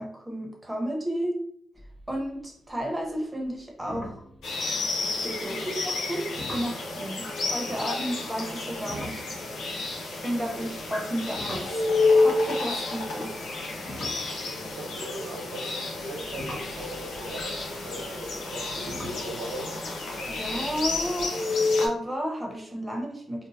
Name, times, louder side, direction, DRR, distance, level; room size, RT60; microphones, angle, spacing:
voice 1, 0.0-1.4 2.1-4.2 5.1-9.4 10.2-11.9 12.2-13.3 20.3-21.5 21.8-23.5, equal, 15° right, 0 dB, 1.1 m, -32 dB
sound 1, 1.8-2.4 2.7-3.1 3.5-3.6 3.9-5.2 6.4-6.8 8.7-12.3 13.1-15.3 15.9-21.3, equal, ahead, 1.3 m, -43 dB
sound 2, 4.4-21.9, left 3 dB, 70° left, 0.7 m, -30 dB
voice 2, 14.8-19.7, right 1 dB, 85° right, -3 dB, 0.9 m, -39 dB
2.7 x 2.1 x 3.1 m, 0.65 s
hypercardioid pair, 45°, 0 cm